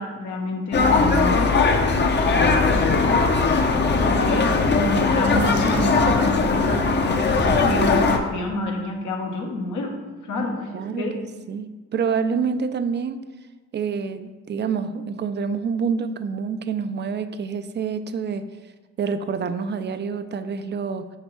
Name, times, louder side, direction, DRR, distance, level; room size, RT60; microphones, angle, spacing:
voice 1, 0.0-2.9 3.8-10.0 10.2-11.2, left 1 dB, 75° left, 1 dB, 1.1 m, -28 dB
sound 1, 0.7-8.2, left 4 dB, 35° left, 0.7 m, -19 dB
voice 2, 3.0-3.5 10.7-13.2 13.7-18.5 19.0-21.1, right 6 dB, 35° right, 11 dB, 0.4 m, -27 dB
6.5 x 5.1 x 3.1 m, 1.3 s
cardioid pair, 90°, 30 cm